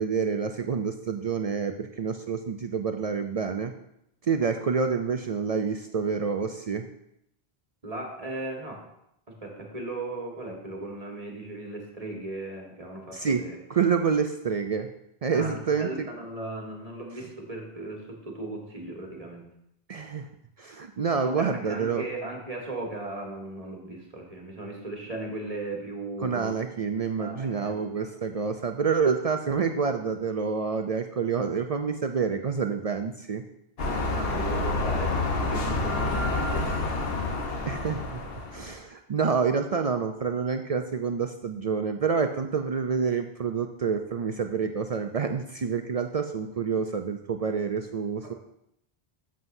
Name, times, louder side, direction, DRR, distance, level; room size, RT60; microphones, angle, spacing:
voice 1, 0.0-3.7 4.3-6.9 13.1-14.9 15.2-16.1 17.2-17.3 19.9-20.3 20.6-22.0 26.2-33.4 37.7-38.2 38.5-48.3, right 5 dB, 55° right, 6 dB, 0.4 m, -28 dB
voice 2, 7.8-8.8 9.4-13.5 15.3-19.5 21.2-26.5 27.2-28.1 34.1-35.2 35.5-36.8, right 2 dB, 35° right, 0 dB, 1.7 m, -37 dB
sound 1, 33.8-38.7, left 2 dB, 65° left, 1.2 m, -28 dB
11.0 x 7.6 x 2.7 m, 0.78 s
omnidirectional pair, 1.1 m